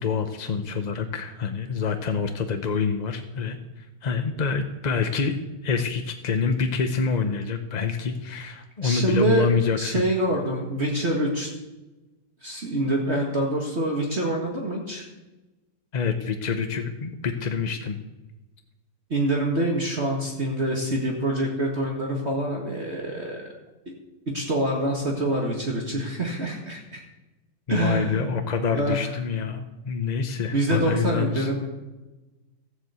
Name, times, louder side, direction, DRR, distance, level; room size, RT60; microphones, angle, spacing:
voice 1, 0.0-5.3 5.6-10.0 15.9-18.0 27.7-31.5, left 5 dB, 40° left, 6 dB, 0.6 m, -26 dB
voice 2, 8.8-9.5 9.8-11.5 12.4-15.1 19.1-23.4 24.3-27.0 27.7-28.2 28.7-29.0 30.5-31.7, right 1 dB, 40° right, 0 dB, 1.9 m, -26 dB
14.5 x 7.5 x 8.1 m, 1.1 s
omnidirectional pair, 1.8 m